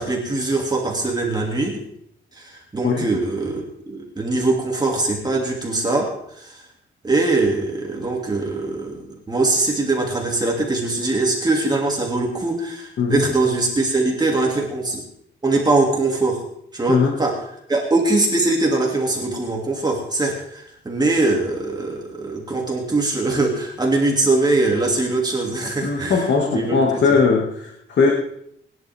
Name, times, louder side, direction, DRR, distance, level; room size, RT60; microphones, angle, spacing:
voice 1, 0.0-1.9 2.3-6.1 6.3-6.6 7.0-15.0 15.4-16.4 16.7-17.4 17.7-27.2, right 2 dB, 20° right, -1 dB, 2.7 m, -22 dB
voice 2, 13.0-13.3 16.9-17.2 25.8-28.1, left 4 dB, 60° left, -1 dB, 2.3 m, -19 dB
21.0 x 11.0 x 3.6 m, 0.71 s
wide cardioid pair, 145°, 21 cm